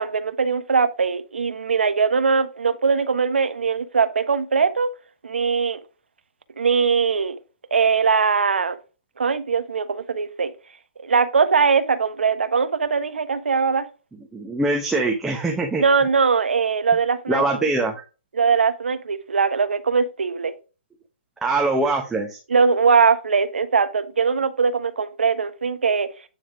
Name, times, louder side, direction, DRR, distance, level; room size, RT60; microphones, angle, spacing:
voice 1, 0.0-4.9 5.2-5.8 6.6-7.4 7.7-8.8 9.2-10.5 11.0-13.9 15.8-17.7 18.3-20.5 22.5-26.1, right 5 dB, 90° right, 1.1 m, -21 dB
voice 2, 14.3-15.8 17.3-17.9 21.4-22.4, right 2 dB, 5° right, 0.8 m, -22 dB
9.3 x 3.6 x 4.8 m
hypercardioid pair, 155°, 6 cm